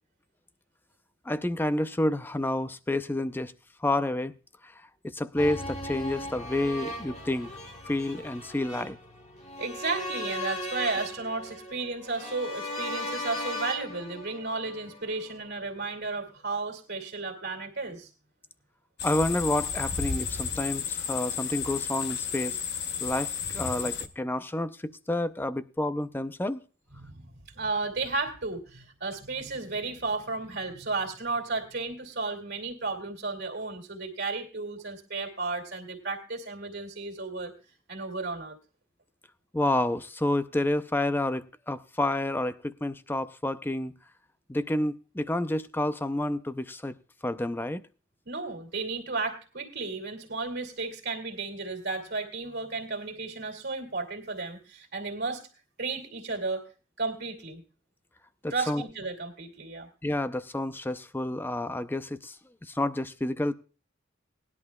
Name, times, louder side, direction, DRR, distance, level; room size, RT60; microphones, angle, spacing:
voice 1, 1.3-3.5 3.8-4.3 4.6-4.7 5.0-7.5 7.9-9.0 19.0-22.6 23.0-26.6 39.5-43.9 44.5-47.0 47.2-47.8 58.4-58.8 60.0-62.4 62.6-63.5, left 1 dB, 10° left, 0.5 m, -29 dB
sound 1, 5.4-15.5 15.8-15.9, left 1 dB, 35° left, 1.5 m, -38 dB
voice 2, 9.6-18.1 27.0-37.5 37.9-38.6 48.3-55.4 55.8-56.6 57.0-57.6 58.5-59.9, right 3 dB, 55° right, 2.5 m, -33 dB
sound 2, 19.0-24.1, left 7 dB, 55° left, 0.9 m, -32 dB
19.0 x 11.0 x 2.3 m
head